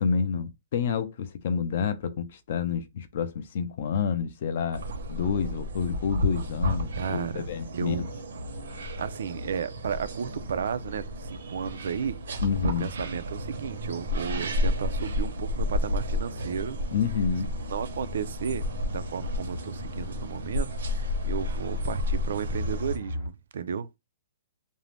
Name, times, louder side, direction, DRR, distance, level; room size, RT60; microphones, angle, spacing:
voice 1, 0.0-8.1 8.7-9.0 12.4-12.9 16.9-17.5, left 6 dB, 40° left, 0.4 m, -29 dB
sound 1, 4.7-23.0, left 1 dB, 85° right, 0.9 m, -32 dB
voice 2, 6.9-7.5 7.7-8.0 9.0-12.2 12.6-16.8 17.7-24.0, right 7 dB, 65° right, 0.3 m, -33 dB
sound 2, 15.5-15.6 16.1-16.2 17.1-23.3, left 1 dB, 55° left, 0.8 m, -40 dB
2.5 x 2.0 x 3.2 m
hypercardioid pair, 175°, 0 cm